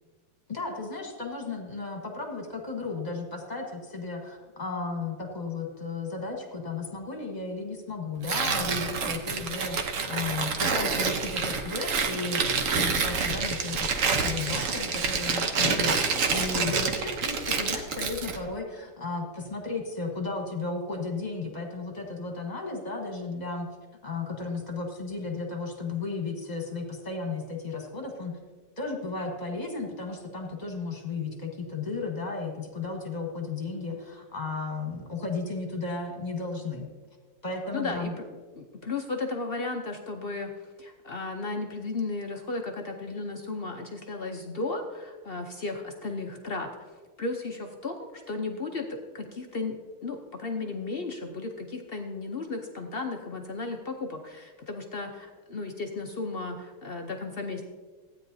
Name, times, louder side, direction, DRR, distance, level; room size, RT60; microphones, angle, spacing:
voice 1, 0.5-9.8 10.1-12.4 12.7-23.7 24.0-28.3 28.8-36.9 37.4-38.1, left 3 dB, 25° left, 1 dB, 1.3 m, -34 dB
Tearing, 8.2-18.4, right 5 dB, 55° right, 1.0 m, -28 dB
voice 2, 37.7-57.6, left 3 dB, 75° left, 3 dB, 0.5 m, -35 dB
15.5 x 9.4 x 2.7 m, 1.4 s
omnidirectional pair, 2.0 m